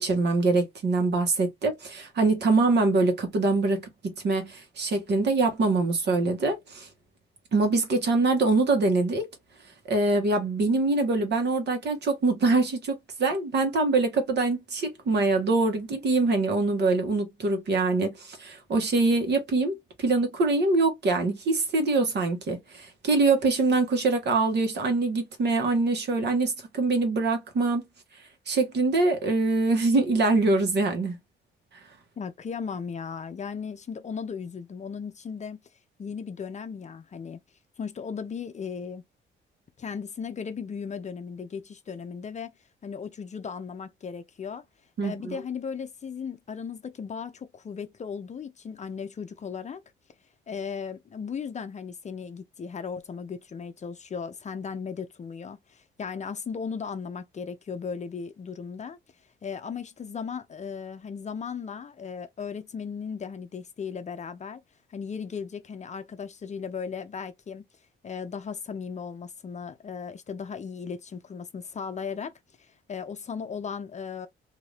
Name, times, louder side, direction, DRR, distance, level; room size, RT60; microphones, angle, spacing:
voice 1, 0.0-3.9 4.2-6.9 7.5-9.3 9.9-12.9 13.2-27.8 28.5-31.2 45.0-45.4, right 3 dB, 60° right, 1.3 m, -24 dB
voice 2, 32.2-35.6 36.0-37.4 37.8-39.0 39.8-42.5 42.8-44.6 45.0-49.8 50.5-59.0 59.4-64.6 64.9-67.6 68.0-72.3 72.9-74.3, left 6 dB, 35° left, 0.6 m, -36 dB
2.8 x 2.6 x 3.3 m
cardioid pair, 90°, 20 cm